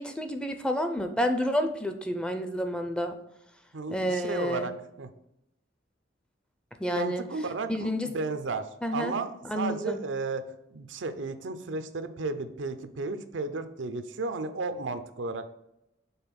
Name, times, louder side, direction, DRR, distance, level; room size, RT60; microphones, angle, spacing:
voice 1, 0.0-3.2 3.9-4.7 6.8-7.2 7.7-8.1 8.8-9.1 9.5-10.0, equal, 5° left, 7 dB, 0.4 m, -29 dB
voice 2, 3.7-4.7 5.0-5.1 6.9-15.5, right 3 dB, 85° right, 10 dB, 0.6 m, -34 dB
5.5 x 3.8 x 5.9 m, 0.84 s
head